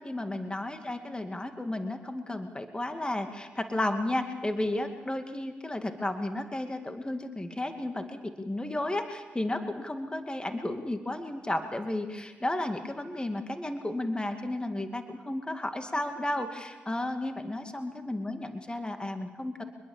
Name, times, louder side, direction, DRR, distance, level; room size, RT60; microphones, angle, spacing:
voice 1, 0.0-19.6, left 1 dB, 20° left, 6 dB, 2.3 m, -33 dB
24.5 x 21.0 x 7.3 m, 1.3 s
hypercardioid pair, 40°, 5 cm